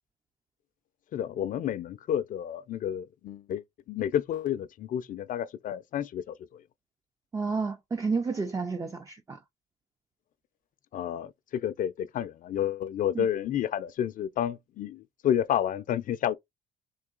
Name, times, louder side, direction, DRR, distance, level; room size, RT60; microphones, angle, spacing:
voice 1, 1.1-6.6 10.9-16.4, left 10 dB, 50° left, 0.5 m, -30 dB
voice 2, 7.3-9.4 13.1-13.3, right 4 dB, 20° right, 0.5 m, -30 dB
3.7 x 2.7 x 3.7 m
cardioid pair, 110°, 17 cm